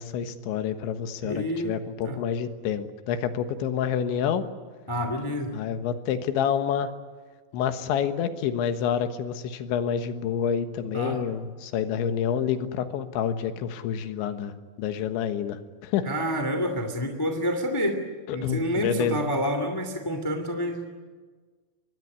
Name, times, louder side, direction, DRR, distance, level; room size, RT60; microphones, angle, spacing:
voice 1, 0.0-4.5 5.5-6.9 7.5-14.5 14.8-16.1 18.3-19.3, left 8 dB, 85° left, 9 dB, 3.7 m, -28 dB
voice 2, 1.2-1.7 2.0-2.2 4.9-5.5 10.9-11.2 16.0-18.0 18.3-20.9, equal, 15° left, 6 dB, 0.9 m, -28 dB
25.0 x 21.0 x 9.7 m, 1.4 s
omnidirectional pair, 5.2 m